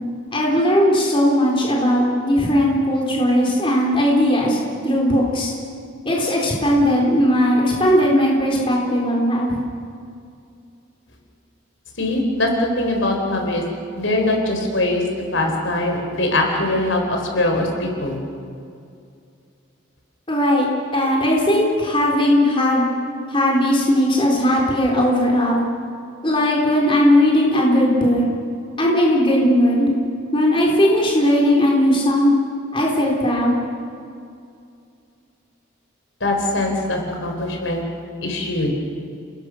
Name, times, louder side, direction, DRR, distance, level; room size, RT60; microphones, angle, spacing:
voice 1, 0.3-4.6 4.8-5.5 6.1-9.6 20.3-20.7 20.9-22.8 23.3-25.6 26.2-28.2 28.8-29.9 30.3-32.3 32.7-33.6, equal, 25° left, -3 dB, 4.0 m, -18 dB
voice 2, 12.0-13.6 13.9-15.0 15.3-18.2 36.2-37.8 38.2-38.7, left 1 dB, 65° left, 2 dB, 4.5 m, -22 dB
29.0 x 20.5 x 6.4 m, 2.4 s
head